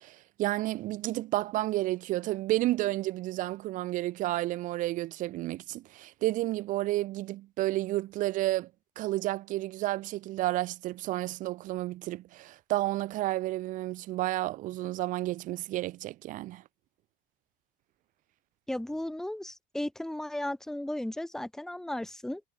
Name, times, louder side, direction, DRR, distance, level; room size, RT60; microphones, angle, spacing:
voice 1, 0.0-8.7 9.0-16.6, right 16 dB, 40° right, 0.9 m, -31 dB
voice 2, 18.7-22.4, left 1 dB, ahead, 1.9 m, -35 dB
cardioid pair, 175°, 21 cm